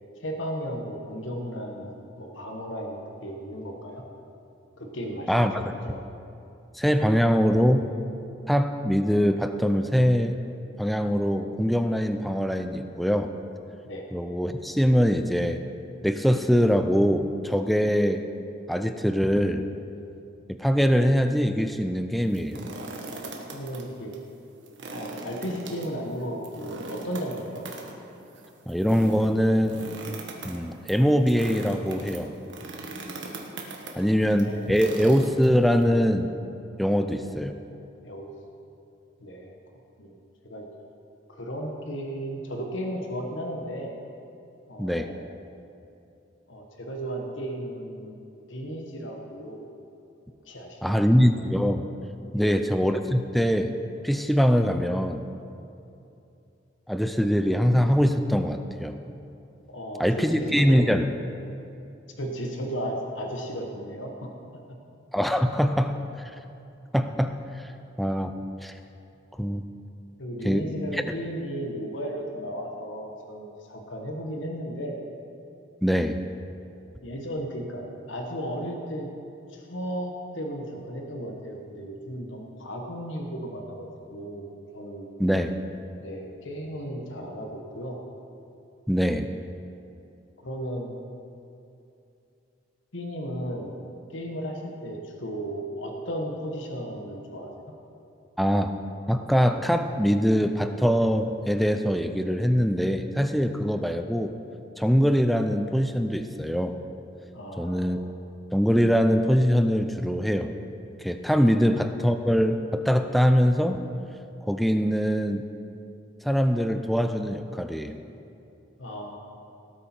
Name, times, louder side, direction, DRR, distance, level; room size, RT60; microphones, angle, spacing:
voice 1, 0.2-4.0 4.8-5.5 5.8-6.0 13.8-14.0 23.5-24.1 24.9-27.7 34.1-35.4 36.9-37.1 38.0-38.3 39.2-39.6 40.0-40.1 40.4-40.7 41.3-43.9 44.7-45.3 46.5-49.7 50.4-51.1 52.3-52.7 59.7-60.9 62.2-64.3 70.2-75.0 77.0-79.1 79.5-84.5 84.7-85.1 86.0-88.0 90.4-91.0 92.9-93.7 94.1-97.7 107.3-107.8 111.5-111.6 118.8-119.2, equal, 75° left, 2 dB, 1.4 m, -35 dB
voice 2, 5.3-5.6 6.8-7.9 8.5-10.4 10.8-13.3 14.1-15.6 16.0-18.3 18.7-19.7 20.5-22.6 28.7-29.8 30.4-32.3 34.0-36.3 36.8-37.5 44.8-45.1 50.8-51.9 52.3-53.7 54.0-55.3 56.9-59.0 60.0-61.1 65.1-66.3 66.9-67.7 68.0-68.3 68.6-68.7 69.4-69.6 70.4-70.6 70.9-71.1 75.8-76.2 85.2-85.5 88.9-89.3 98.4-98.7 99.1-104.3 104.8-106.8 107.6-108.0 108.5-110.5 111.0-113.8 114.5-115.4 116.2-118.0, equal, ahead, 7 dB, 0.4 m, -23 dB
sound 1, 22.2-23.8 24.1-24.2 24.6-35.8, right 2 dB, 65° right, 1.5 m, -40 dB
18.0 x 8.5 x 4.5 m, 2.7 s
head